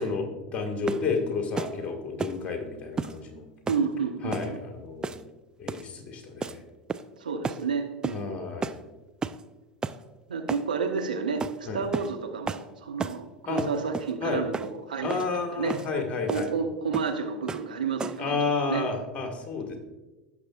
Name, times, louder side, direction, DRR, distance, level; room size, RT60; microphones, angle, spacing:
voice 1, 0.0-3.4 4.2-5.2 5.6-6.6 8.1-8.8 11.7-11.9 13.5-13.6 14.2-14.4 15.0-16.5 18.2-19.8, left 4 dB, 35° left, 3 dB, 1.7 m, -31 dB
sound 1, 0.9-1.1 1.6-1.8 2.2-2.4 3.0-3.2 3.7-3.9 4.3-4.5 5.0-5.3 5.7-5.9 6.4-6.6 6.9-7.2 7.4-7.6 8.0-8.2 8.6-8.8 9.2-9.4 9.8-10.0 10.5-10.7 11.4-11.6 11.9-12.1 12.5-12.7 13.0-13.2 13.6-14.1 14.5-14.7 15.1-15.3 15.7-15.9 16.3-16.5 16.9-17.1 17.5-17.7 18.0-18.3, right 4 dB, 15° right, 0.4 m, -33 dB
voice 2, 3.7-4.6 7.2-8.4 10.3-15.2 15.5-16.0 16.3-18.8, right 5 dB, 80° right, 4 dB, 1.0 m, -31 dB
16.0 x 6.6 x 2.4 m, 1.1 s
figure-of-eight pair, 80°, 5 cm